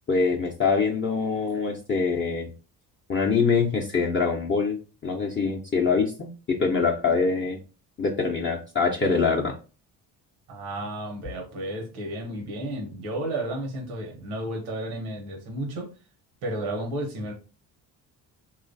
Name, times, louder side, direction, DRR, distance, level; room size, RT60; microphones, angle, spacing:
voice 1, 0.1-2.5 3.1-4.8 5.0-7.6 8.0-9.5, left 5 dB, 30° left, -1 dB, 0.6 m, -24 dB
voice 2, 10.5-15.9 16.4-17.3, right 1 dB, 90° right, 2 dB, 1.0 m, -32 dB
3.0 x 2.4 x 2.6 m, 0.34 s
supercardioid pair, 65°, 42 cm